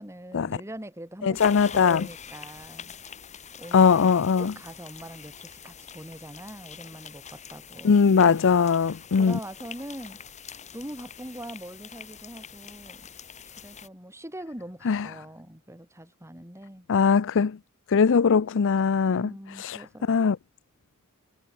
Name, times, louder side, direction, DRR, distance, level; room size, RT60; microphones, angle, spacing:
voice 1, 0.0-3.0 3.6-8.4 8.8-10.2 10.7-13.1 13.6-16.9 19.0-20.1, right 1 dB, 10° right, 5.4 m, -42 dB
voice 2, 1.2-2.1 3.7-4.5 7.8-9.4 14.9-15.1 16.9-17.6 17.9-19.3 19.6-19.8 20.1-20.4, left 6 dB, 60° left, 0.5 m, -20 dB
sound 1, 1.3-13.9, left 7 dB, 30° left, 1.7 m, -44 dB
head